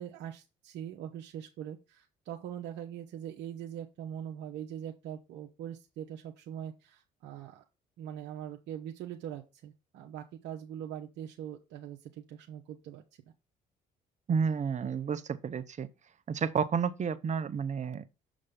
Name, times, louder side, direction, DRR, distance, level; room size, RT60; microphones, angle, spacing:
voice 1, 0.0-7.6 8.0-13.0, right 10 dB, 70° right, 1.1 m, -42 dB
voice 2, 14.3-15.9 16.3-18.0, right 6 dB, 40° right, 1.0 m, -31 dB
6.5 x 6.4 x 3.8 m
supercardioid pair, 70°, 18 cm